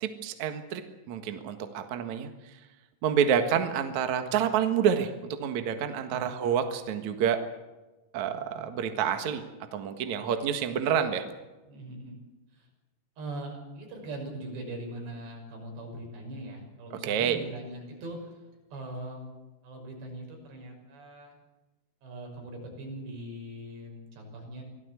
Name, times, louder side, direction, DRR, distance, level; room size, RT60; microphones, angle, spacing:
voice 1, 0.0-0.8 1.1-2.3 3.0-7.4 8.1-9.4 9.7-11.2 16.9-17.4, right 8 dB, 55° right, 7 dB, 2.5 m, -28 dB
voice 2, 11.7-12.2 12.5-12.7 13.2-19.3 19.6-21.4 22.0-24.6, right 1 dB, 90° right, 2 dB, 8.2 m, -41 dB
25.0 x 17.5 x 8.2 m, 1.1 s
omnidirectional pair, 4.9 m